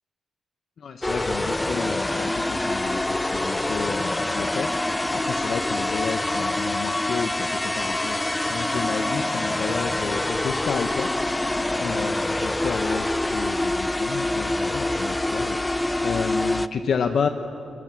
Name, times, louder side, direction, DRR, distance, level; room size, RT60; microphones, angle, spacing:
voice 1, 0.8-17.3, left 6 dB, 55° left, 7 dB, 0.9 m, -31 dB
sound 1, 1.0-16.7, left 1 dB, 10° left, 0.5 m, -25 dB
26.5 x 21.5 x 7.6 m, 2.8 s
wide cardioid pair, 140°, 0 cm